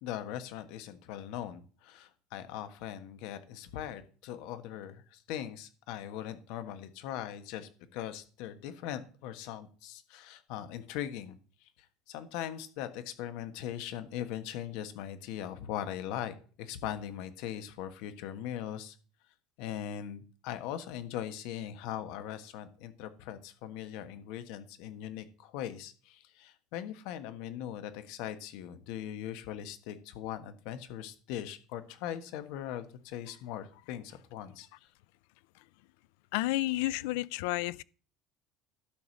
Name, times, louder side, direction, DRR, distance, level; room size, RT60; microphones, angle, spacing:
voice 1, 0.0-11.7 12.1-19.0 19.6-34.9, left 10 dB, 65° left, 1.4 m, -40 dB
voice 2, 36.3-37.8, left 18 dB, 85° left, 0.4 m, -31 dB
12.0 x 5.0 x 7.2 m
cardioid pair, 170°, 0 cm